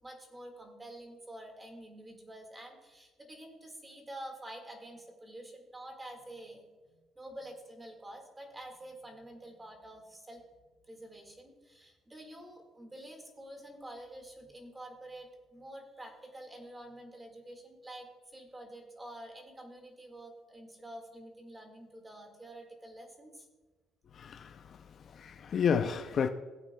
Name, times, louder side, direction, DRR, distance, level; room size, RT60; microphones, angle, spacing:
voice 1, 0.0-10.4 10.8-23.5, right 1 dB, 15° right, 1.8 m, -48 dB
voice 2, 24.1-26.3, left 7 dB, 45° left, 0.4 m, -32 dB
17.0 x 8.7 x 2.2 m
cardioid pair, 130°, 0 cm